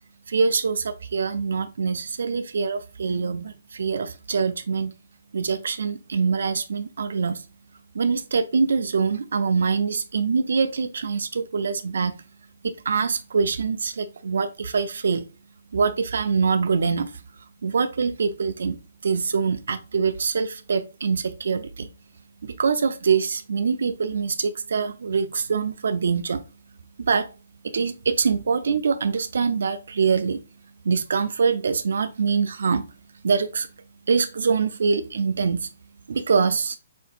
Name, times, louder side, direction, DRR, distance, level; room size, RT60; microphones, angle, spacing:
voice 1, 0.3-4.9 5.3-7.4 7.9-12.1 12.6-15.2 15.7-17.1 17.6-18.8 19.0-21.9 22.4-26.4 27.1-27.3 27.6-30.4 30.8-32.8 33.2-33.7 34.1-35.7 36.1-36.8, right 5 dB, 75° right, 0.5 m, -24 dB
6.2 x 2.9 x 2.5 m
hypercardioid pair, 155°, 0 cm